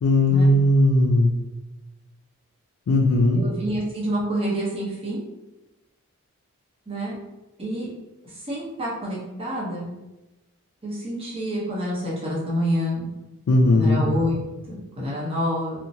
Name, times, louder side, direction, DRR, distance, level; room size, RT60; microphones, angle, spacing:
voice 1, 0.0-1.3 2.9-3.4 13.5-14.0, left 1 dB, 80° left, 0 dB, 0.4 m, -18 dB
voice 2, 3.4-5.2 6.9-7.1 7.6-7.9 8.5-9.9 10.8-13.1 13.7-15.8, equal, 25° right, -6 dB, 0.8 m, -28 dB
2.8 x 2.1 x 2.6 m, 1.0 s
head